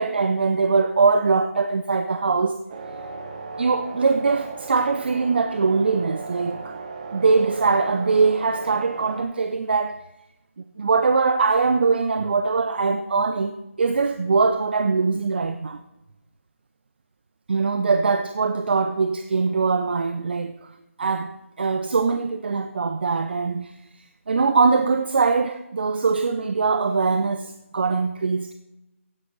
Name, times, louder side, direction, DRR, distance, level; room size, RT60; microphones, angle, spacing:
voice 1, 0.0-2.6 3.6-6.8 7.1-10.0 10.8-15.8 17.5-20.7 21.0-23.7 24.3-28.5, right 4 dB, 45° right, 0.7 m, -22 dB
sound 1, 2.7-9.2, right 4 dB, 30° right, 1.4 m, -36 dB
16.0 x 10.0 x 4.1 m
figure-of-eight pair, 160°, 8 cm